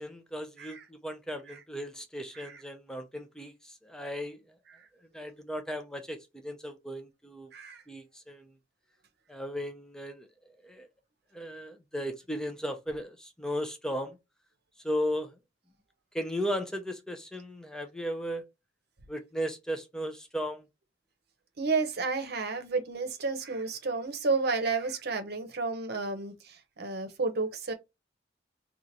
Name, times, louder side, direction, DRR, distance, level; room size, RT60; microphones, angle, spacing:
voice 1, 0.0-4.4 5.1-7.5 7.9-8.5 9.3-10.3 10.6-10.9 11.3-14.2 14.8-15.3 16.1-18.4 19.1-20.6, equal, 5° left, 0.5 m, -36 dB
voice 2, 7.5-7.8 21.6-27.7, right 4 dB, 55° right, 0.8 m, -31 dB
2.9 x 2.4 x 3.9 m
head